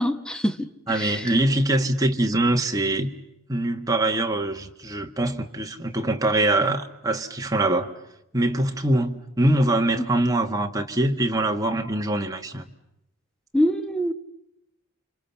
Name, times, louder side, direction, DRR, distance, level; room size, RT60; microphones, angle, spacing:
voice 1, 0.0-1.3 13.5-14.1, equal, 5° left, 1.0 m, -25 dB
voice 2, 0.9-3.1 3.5-7.9 8.3-12.7, right 1 dB, 15° right, 1.6 m, -23 dB
29.5 x 26.0 x 7.1 m
head